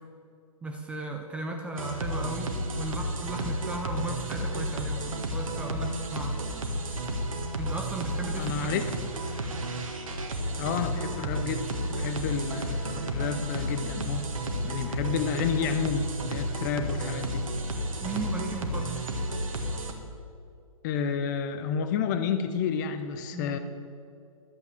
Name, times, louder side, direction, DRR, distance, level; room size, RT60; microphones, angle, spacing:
voice 1, 0.6-6.4 7.6-8.8 18.0-19.1 23.3-23.6, right 2 dB, 5° right, 3 dB, 0.5 m, -36 dB
sound 1, 1.8-19.9, right 1 dB, 65° right, 1.7 m, -32 dB
voice 2, 8.4-8.9 10.6-14.2 14.6-17.5 20.8-23.6, left 6 dB, 30° left, 10 dB, 0.8 m, -30 dB
12.0 x 8.2 x 7.1 m, 2.4 s
figure-of-eight pair, 125°, 18 cm